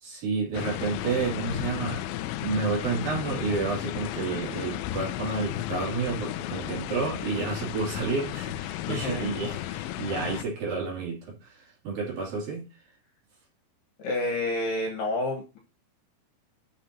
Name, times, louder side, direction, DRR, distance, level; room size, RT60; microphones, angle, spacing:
voice 1, 0.0-2.1 2.4-12.6, right 4 dB, 50° right, -3 dB, 4.2 m, -30 dB
sound 1, 0.5-10.4, left 14 dB, 90° left, 2.6 m, -34 dB
voice 2, 8.9-9.3 14.0-15.6, left 2 dB, 65° left, 0 dB, 3.1 m, -29 dB
11.5 x 6.2 x 2.9 m, 0.30 s
omnidirectional pair, 5.8 m